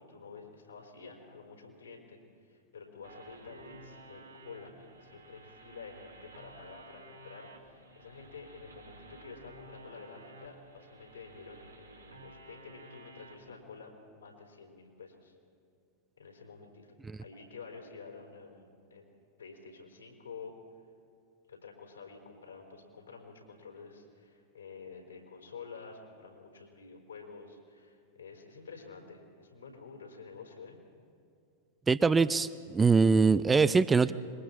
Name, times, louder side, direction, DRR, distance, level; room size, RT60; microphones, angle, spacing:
voice 1, 0.0-15.3 16.2-16.9 17.2-19.0 19.4-20.5 21.5-30.8, left 4 dB, 75° left, 1 dB, 4.4 m, -49 dB
sound 1, 3.0-13.5, right 2 dB, 80° right, 2.2 m, -53 dB
voice 2, 31.9-34.1, right 4 dB, 15° right, 15 dB, 0.5 m, -23 dB
26.5 x 22.5 x 4.4 m, 2.5 s
figure-of-eight pair, 90°, 0 cm